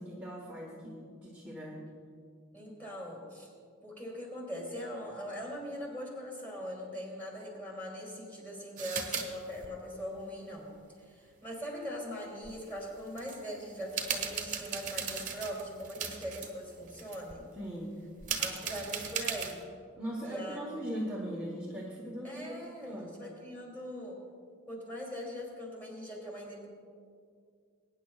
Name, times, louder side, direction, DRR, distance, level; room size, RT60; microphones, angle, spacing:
voice 1, 0.0-1.9 17.5-18.0 20.0-23.1, equal, 5° right, -4 dB, 1.1 m, -40 dB
voice 2, 2.5-3.5 3.8-10.7 11.0-17.5 18.4-19.6 20.2-20.8 22.2-24.2 24.7-26.7, equal, 10° left, -3 dB, 2.7 m, -41 dB
sound 1, 8.8-9.3 9.5-9.7 12.4-12.5 13.1-13.4 13.8-16.5 16.9-17.3 18.2-19.6, right 6 dB, 35° right, 1.2 m, -37 dB
22.5 x 9.7 x 2.4 m, 2.3 s
head